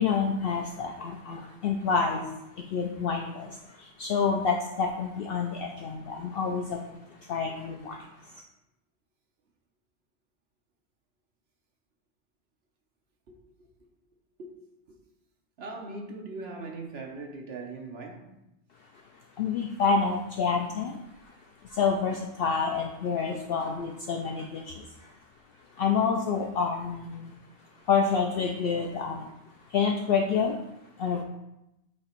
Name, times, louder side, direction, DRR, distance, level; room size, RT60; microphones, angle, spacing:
voice 1, 0.0-8.4 19.4-21.4 21.6-25.1 25.7-27.3 27.7-30.6 31.0-31.2, left 5 dB, 60° left, 0.7 m, -28 dB
voice 2, 15.6-18.3, right 3 dB, 60° right, 1.1 m, -40 dB
7.6 x 2.9 x 4.4 m
omnidirectional pair, 1.2 m